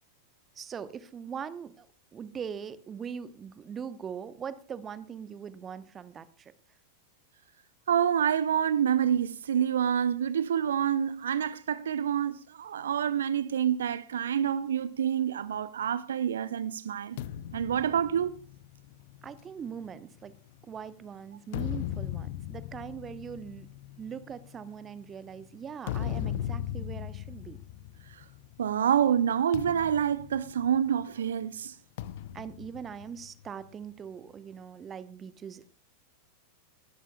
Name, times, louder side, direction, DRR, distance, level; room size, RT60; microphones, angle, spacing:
voice 1, 0.6-1.9 2.1-6.5 19.2-20.3 20.6-23.7 24.0-27.6 32.3-35.7, right 7 dB, 25° right, 1.0 m, -41 dB
voice 2, 7.9-17.2 17.5-18.4 28.1-28.2 28.6-31.8, right 9 dB, 65° right, 0.6 m, -27 dB
sound 1, 17.2-20.8 21.3-28.7 29.0-29.2 29.5-31.1 32.0-33.7, left 11 dB, 50° left, 0.7 m, -38 dB
20.5 x 12.0 x 2.3 m
figure-of-eight pair, 90°, 0 cm